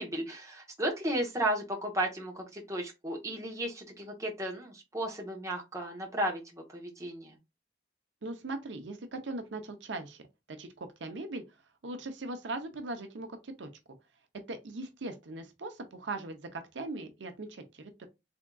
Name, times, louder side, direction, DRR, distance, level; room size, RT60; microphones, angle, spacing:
voice 1, 0.0-7.4, right 1 dB, 15° right, 0.9 m, -34 dB
voice 2, 8.2-11.4 11.8-13.7 14.5-18.1, right 2 dB, 75° right, 0.6 m, -40 dB
3.6 x 3.5 x 2.3 m
head